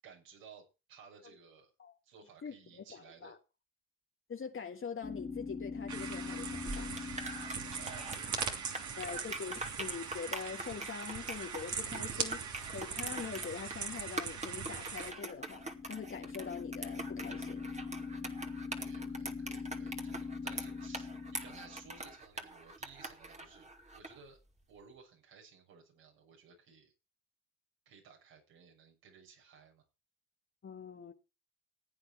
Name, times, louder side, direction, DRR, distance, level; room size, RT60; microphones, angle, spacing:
voice 1, 0.0-1.7 2.0-3.4 7.7-8.3 8.7-8.8 9.1-9.4 17.9-24.4 24.7-26.9 27.9-29.8, right 6 dB, 70° right, 7.2 m, -57 dB
voice 2, 2.4-3.4 4.3-6.9 8.9-17.8 30.6-31.1, left 6 dB, 35° left, 1.7 m, -44 dB
sound 1, 5.0-9.1 15.1-22.1, left 4 dB, 20° left, 2.3 m, -43 dB
sound 2, 5.9-15.1, right 6 dB, 50° right, 3.0 m, -40 dB
sound 3, 6.4-24.2, right 2 dB, 20° right, 2.4 m, -44 dB
16.0 x 8.9 x 4.6 m
supercardioid pair, 70°, 38 cm